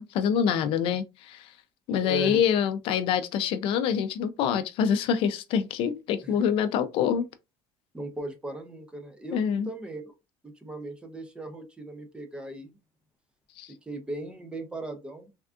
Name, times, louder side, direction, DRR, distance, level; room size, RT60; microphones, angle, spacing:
voice 1, 0.0-1.5 1.9-7.3 9.3-9.7 13.6-13.7, left 8 dB, 55° left, 0.4 m, -26 dB
voice 2, 2.0-2.4 6.2-6.3 7.9-10.1 10.4-12.7 13.7-15.3, right 2 dB, 10° right, 0.5 m, -38 dB
3.4 x 2.3 x 2.4 m
cardioid pair, 160°, 11 cm